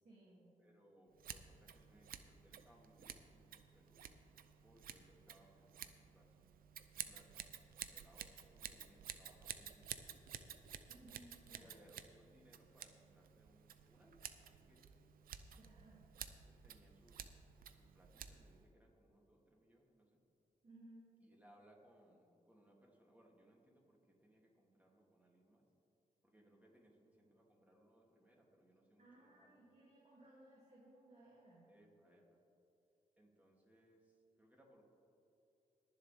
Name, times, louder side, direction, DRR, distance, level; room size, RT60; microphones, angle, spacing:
voice 1, 0.0-0.6 10.9-11.7 12.5-12.6 15.5-16.0 20.6-21.1 29.0-31.7, right 1 dB, 50° right, -7 dB, 2.7 m, -62 dB
voice 2, 0.6-4.1 4.6-7.3 7.8-10.5 11.6-15.2 16.3-20.2 21.2-25.6 26.2-29.5 31.6-32.4 33.2-34.8, right 1 dB, 10° right, -2 dB, 3.0 m, -69 dB
Scissors, 1.2-18.7, right 9 dB, 90° right, 0.6 m, -53 dB
21.5 x 7.4 x 3.6 m, 2.8 s
cardioid pair, 65°, 15 cm